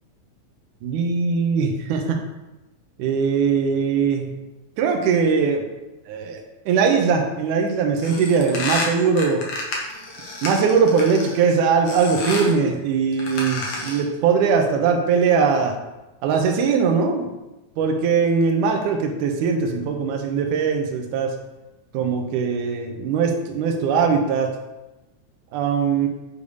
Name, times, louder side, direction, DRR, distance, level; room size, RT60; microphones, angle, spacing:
voice 1, 0.8-2.2 3.0-4.3 4.8-5.6 6.1-9.4 10.4-15.8 16.2-17.3 17.8-21.3 21.9-24.5 25.5-26.1, right 5 dB, 75° right, 3 dB, 2.1 m, -20 dB
sound 1, 8.0-11.4 11.9-12.6 13.1-14.1, left 3 dB, 60° left, 2.1 m, -30 dB
8.6 x 3.3 x 5.4 m, 1.0 s
omnidirectional pair, 4.2 m